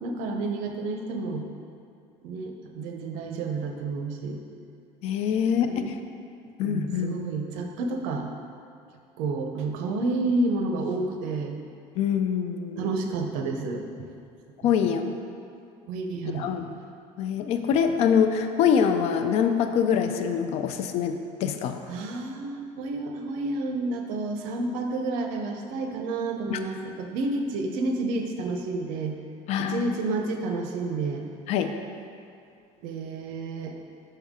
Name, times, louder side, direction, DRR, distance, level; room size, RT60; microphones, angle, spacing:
voice 1, 0.0-1.5 2.2-4.4 5.4-5.9 6.6-8.3 9.2-11.6 12.8-13.9 14.6-14.7 15.9-16.5 21.9-29.2 29.6-31.2 32.8-33.7, right 3 dB, 85° right, 3 dB, 0.7 m, -30 dB
voice 2, 5.0-6.0 6.6-7.2 12.0-12.9 14.6-15.1 16.3-16.7 17.2-21.8 26.5-26.6 29.5-29.9 31.5-31.7, left 7 dB, 55° left, 7 dB, 0.4 m, -24 dB
5.6 x 5.5 x 3.6 m, 2.5 s
cardioid pair, 160°, 13 cm